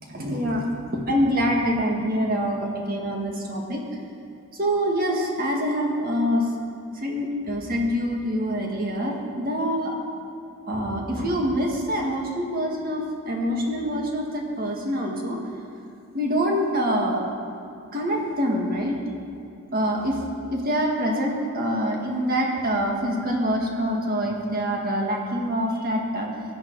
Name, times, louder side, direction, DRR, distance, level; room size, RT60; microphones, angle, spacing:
voice 1, 0.1-3.8 4.6-6.5 6.9-9.9 10.7-15.4 16.1-17.3 17.9-19.0 19.7-20.2 20.5-26.3, equal, 45° right, 0 dB, 1.9 m, -25 dB
17.0 x 10.5 x 4.7 m, 2.6 s
head